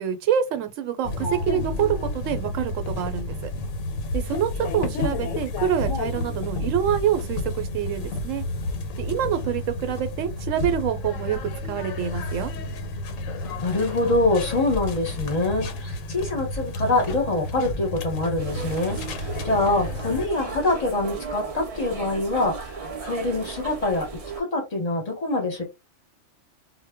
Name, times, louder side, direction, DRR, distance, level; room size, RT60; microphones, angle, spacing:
voice 1, 0.0-3.5 4.1-8.4 9.0-11.4 11.7-12.5, right 9 dB, 80° right, 0.9 m, -26 dB
sound 1, 1.0-20.3, left 2 dB, 90° left, 1.0 m, -31 dB
voice 2, 13.6-22.5 23.0-24.1 24.4-25.6, left 2 dB, 35° left, 0.8 m, -25 dB
sound 2, 18.4-24.4, right 4 dB, 60° right, 0.3 m, -35 dB
2.1 x 2.1 x 3.4 m
omnidirectional pair, 1.3 m